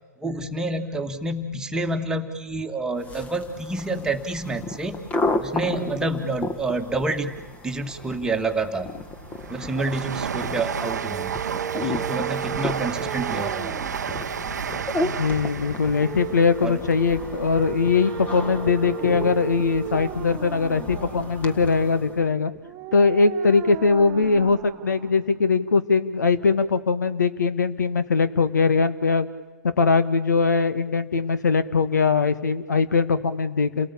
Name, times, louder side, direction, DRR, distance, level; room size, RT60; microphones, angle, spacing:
voice 1, 0.2-5.1 5.4-9.0 9.5-11.4 11.7-13.7 16.6-16.8, right 2 dB, 5° right, 4 dB, 2.0 m, -28 dB
sound 1, 3.0-22.3, left 2 dB, 15° left, 1.5 m, -34 dB
Train, 8.4-18.6 19.0-19.9 20.1-20.2, right 7 dB, 70° right, 0.7 m, -32 dB
sound 2, 10.8-25.8, right 11 dB, 25° right, 0.9 m, -37 dB
voice 2, 15.0-22.5 22.9-29.3 29.6-33.9, left 4 dB, 75° left, 11 dB, 1.8 m, -21 dB
29.5 x 18.5 x 8.6 m, 1.2 s
hypercardioid pair, 125°, 10 cm